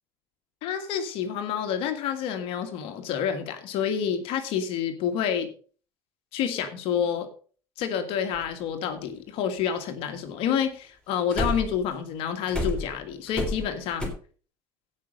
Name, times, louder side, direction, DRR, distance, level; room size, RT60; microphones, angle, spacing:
voice 1, 0.6-5.5 6.3-7.3 7.8-14.1, left 8 dB, 70° left, 8 dB, 1.8 m, -28 dB
sound 1, 8.3-8.4 11.3-11.9 12.5-14.1, left 1 dB, 10° left, 3.7 m, -29 dB
16.0 x 5.5 x 5.3 m, 0.41 s
supercardioid pair, 90°, 10 cm